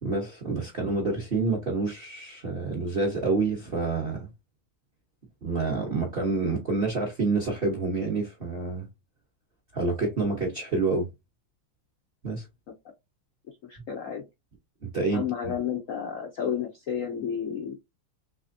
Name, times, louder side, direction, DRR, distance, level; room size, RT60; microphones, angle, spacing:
voice 1, 0.0-4.3 5.4-8.9 9.7-11.1 12.2-12.4 14.8-15.5, right 3 dB, 50° right, 0.7 m, -28 dB
voice 2, 13.7-14.2 15.1-17.8, left 8 dB, 80° left, 0.7 m, -31 dB
3.3 x 3.3 x 2.5 m
omnidirectional pair, 2.3 m